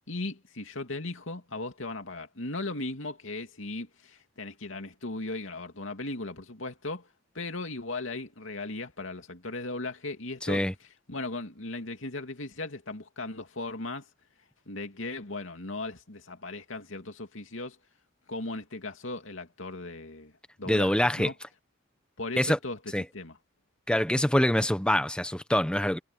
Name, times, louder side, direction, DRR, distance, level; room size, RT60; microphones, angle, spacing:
voice 1, 0.1-7.1 7.3-10.6 11.1-14.1 14.7-17.8 18.3-20.3 20.6-21.3 22.2-22.8 23.1-23.4, left 2 dB, 80° left, 2.7 m, -37 dB
voice 2, 10.4-10.7 20.7-21.3 22.4-22.6 22.9-23.0 23.9-26.0, left 1 dB, 5° left, 1.0 m, -25 dB
head